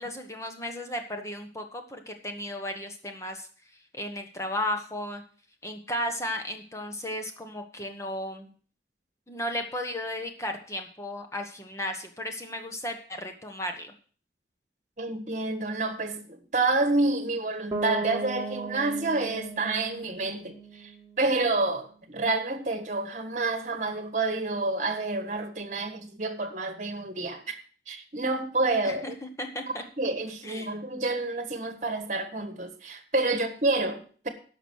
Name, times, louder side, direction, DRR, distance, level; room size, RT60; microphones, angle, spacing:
voice 1, 0.0-3.5 3.9-5.2 5.6-8.5 9.3-13.9 28.8-29.1 29.4-29.8 30.4-30.7, left 1 dB, 15° left, 1.2 m, -34 dB
voice 2, 15.0-20.9 21.2-27.6 27.9-29.2 30.0-34.3, right 2 dB, 45° right, 1.4 m, -28 dB
Bass guitar, 17.7-21.6, right 3 dB, 15° right, 1.7 m, -37 dB
11.0 x 6.2 x 6.3 m
head